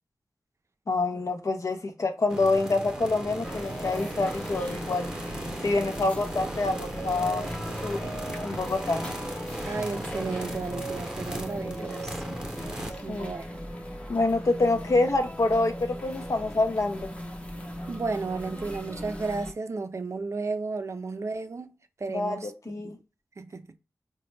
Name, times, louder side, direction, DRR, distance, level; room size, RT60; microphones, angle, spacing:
voice 1, 0.9-5.1 5.6-7.5 7.8-8.0 8.4-9.1 13.1-13.3 14.1-17.1 22.1-23.0, left 2 dB, 55° left, 0.6 m, -26 dB
sound 1, 2.3-12.9, right 1 dB, 10° right, 0.9 m, -37 dB
sound 2, 3.4-19.5, equal, 20° left, 0.7 m, -38 dB
voice 2, 9.7-12.1 13.0-13.5 17.9-22.5 22.8-23.0 23.4-23.7, right 3 dB, 50° right, 0.5 m, -33 dB
4.0 x 2.2 x 3.1 m
wide cardioid pair, 60°, 6 cm